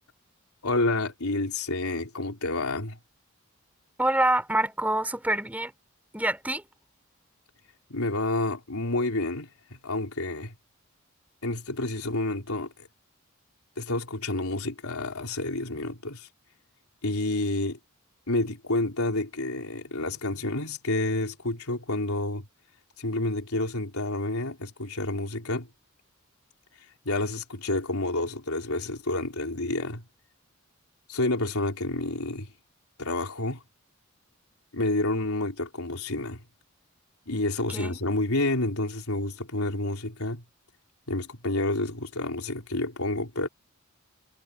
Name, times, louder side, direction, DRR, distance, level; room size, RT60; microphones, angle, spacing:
voice 1, 0.6-3.0 7.9-9.5 9.8-10.5 11.4-12.9 13.8-16.3 17.0-17.8 18.3-22.5 23.0-25.7 27.0-30.0 31.1-32.5 33.0-33.6 34.7-36.4 37.3-40.4 41.1-43.5, left 2 dB, 90° left, 4.1 m, -29 dB
voice 2, 4.0-5.7 6.1-6.6 37.7-38.0, right 1 dB, 5° right, 4.0 m, -26 dB
head